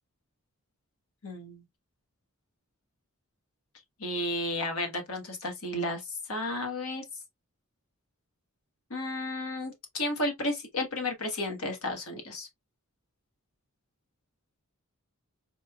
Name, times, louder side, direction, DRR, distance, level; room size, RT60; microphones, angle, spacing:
voice 1, 1.2-1.6 4.0-6.0 6.3-7.0 8.9-12.5, left 1 dB, 75° left, 1.4 m, -32 dB
4.4 x 3.1 x 2.3 m
head